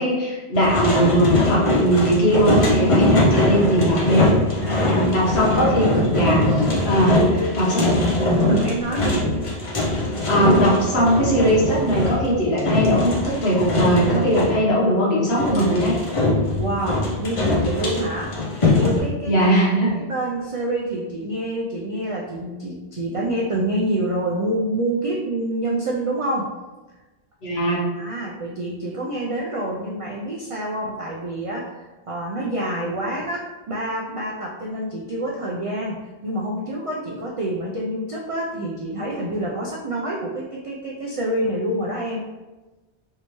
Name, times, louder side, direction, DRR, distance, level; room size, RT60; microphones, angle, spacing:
voice 1, 0.0-4.2 4.8-7.9 10.3-16.0 19.2-20.0 27.4-27.8, right 1 dB, 70° left, -5 dB, 1.3 m, -20 dB
sound 1, 0.5-14.6 15.3-19.0, left 2 dB, 35° left, 0.6 m, -21 dB
voice 2, 4.6-5.1 5.4-5.7 6.7-7.9 8.5-9.2 16.5-18.3 18.8-19.4 19.8-26.5 28.0-42.2, right 1 dB, 60° right, -3 dB, 0.3 m, -27 dB
3.3 x 2.7 x 2.9 m, 1.1 s
omnidirectional pair, 1.1 m